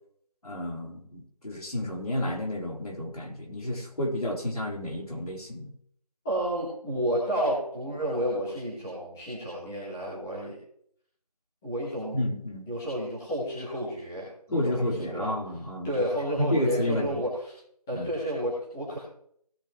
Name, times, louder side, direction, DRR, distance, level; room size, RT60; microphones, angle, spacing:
voice 1, 0.4-5.7 12.1-12.7 14.5-16.0 16.4-17.2 17.9-18.1, left 1 dB, 70° left, 0 dB, 3.6 m, -30 dB
voice 2, 6.2-10.6 11.6-12.2 12.7-15.3 15.8-17.5 17.9-19.0, equal, 5° left, -10 dB, 1.2 m, -31 dB
17.5 x 7.9 x 3.0 m, 0.67 s
figure-of-eight pair, 170°, 20 cm